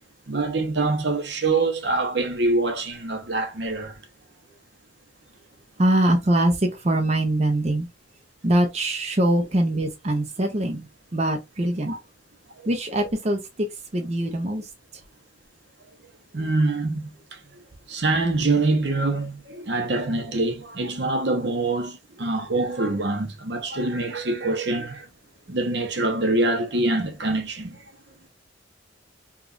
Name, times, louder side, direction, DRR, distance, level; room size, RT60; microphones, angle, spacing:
voice 1, 0.3-4.0 11.9-12.0 16.3-17.4 17.9-25.1 25.5-27.8, right 2 dB, 65° right, 0.9 m, -25 dB
voice 2, 5.8-7.9 8.4-11.9 12.7-14.7, right 1 dB, 35° right, 0.7 m, -23 dB
4.9 x 2.5 x 2.5 m
head